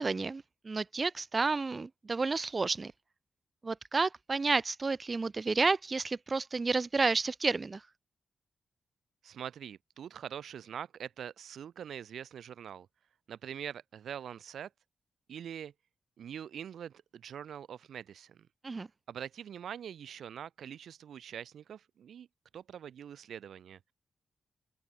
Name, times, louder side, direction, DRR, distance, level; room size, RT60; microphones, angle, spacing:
voice 1, 0.0-2.9 3.6-7.8 18.6-18.9, right 3 dB, 40° right, 1.9 m, -31 dB
voice 2, 9.2-12.9 13.3-14.7 15.3-15.7 16.2-18.5 19.1-22.3 22.5-23.9, right 9 dB, 80° right, 1.7 m, -44 dB
open air
cardioid pair, 65°, 0 cm